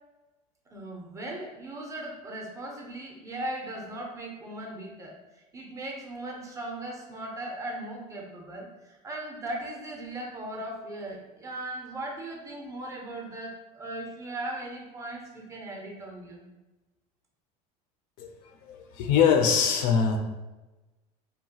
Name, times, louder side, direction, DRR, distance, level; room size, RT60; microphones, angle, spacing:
voice 1, 0.7-5.1 5.5-16.5, right 1 dB, 20° right, -1 dB, 0.4 m, -38 dB
voice 2, 18.2-20.2, left 7 dB, 55° left, 4 dB, 0.4 m, -23 dB
2.7 x 2.2 x 2.8 m, 1.1 s
cardioid pair, 140°, 17 cm